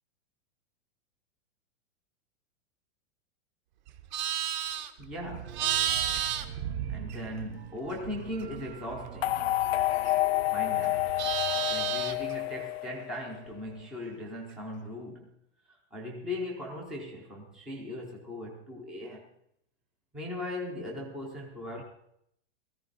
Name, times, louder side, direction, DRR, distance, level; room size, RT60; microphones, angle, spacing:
Livestock farm animals working animals, 3.9-7.6 7.9-10.4 10.7-12.3, right 10 dB, 40° right, 1.0 m, -33 dB
voice 1, 5.0-5.7 6.9-9.5 10.5-11.2 11.7-15.3 15.7-19.2 20.1-21.8, left 1 dB, ahead, 0.4 m, -39 dB
sound 1, 5.4-11.7, right 7 dB, 60° right, 1.4 m, -46 dB
sound 2, 9.2-13.4, left 18 dB, 60° left, 0.5 m, -29 dB
17.0 x 14.5 x 4.0 m
supercardioid pair, 175°, 35 cm